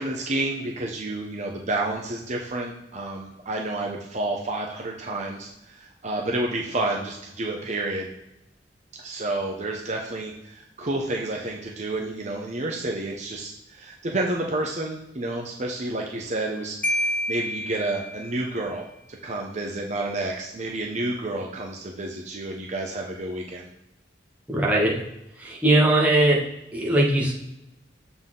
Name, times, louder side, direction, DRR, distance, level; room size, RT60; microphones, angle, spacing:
voice 1, 0.0-8.1 9.0-23.7, right 2 dB, 40° right, 0 dB, 0.8 m, -30 dB
Marimba xylophone, 16.8-18.6, left 1 dB, 10° left, 0.6 m, -28 dB
voice 2, 24.5-25.0 25.4-26.4 26.7-27.3, right 1 dB, 10° right, -4 dB, 1.5 m, -20 dB
7.2 x 4.0 x 3.8 m, 0.86 s
head